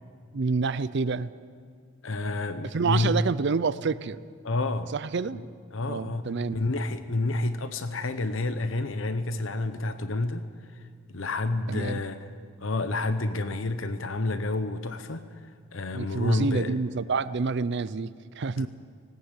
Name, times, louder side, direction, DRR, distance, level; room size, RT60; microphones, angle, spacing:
voice 1, 0.3-1.3 2.7-4.2 4.9-5.4 5.9-6.6 11.7-12.0 15.9-18.7, right 4 dB, 60° right, 15 dB, 0.5 m, -28 dB
voice 2, 2.0-3.2 4.4-4.9 5.3-5.4 5.7-10.5 10.7-12.3 12.6-15.4 15.7-16.7 18.6-18.7, left 2 dB, 70° left, 10 dB, 0.9 m, -29 dB
19.0 x 18.0 x 8.4 m, 2.1 s
head